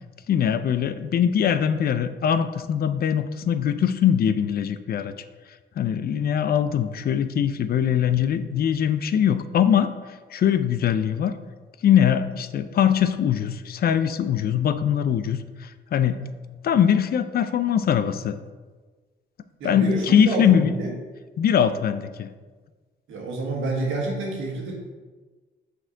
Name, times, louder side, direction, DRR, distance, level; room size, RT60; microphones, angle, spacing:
voice 1, 0.3-5.1 5.8-9.9 10.3-11.3 11.8-16.3 16.6-18.4 19.6-20.7 21.4-22.3, left 9 dB, 50° left, 12 dB, 0.4 m, -22 dB
voice 2, 19.6-20.9 23.1-24.7, right 2 dB, 85° right, -1 dB, 1.5 m, -28 dB
6.2 x 4.3 x 3.9 m, 1.4 s
cardioid pair, 90°, 20 cm